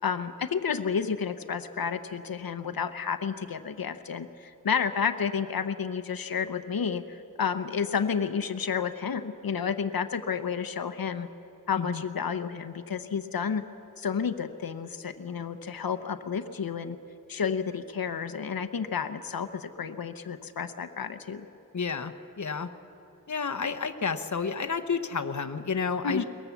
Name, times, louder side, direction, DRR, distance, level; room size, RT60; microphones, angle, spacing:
voice 1, 0.0-11.3 11.7-13.6 14.0-17.0 17.3-21.5 26.0-26.2, left 6 dB, 90° left, 9 dB, 0.8 m, -31 dB
voice 2, 21.7-22.7 23.3-26.2, left 5 dB, 55° left, 8 dB, 1.0 m, -30 dB
22.5 x 18.5 x 7.1 m, 2.9 s
wide cardioid pair, 50°, 34 cm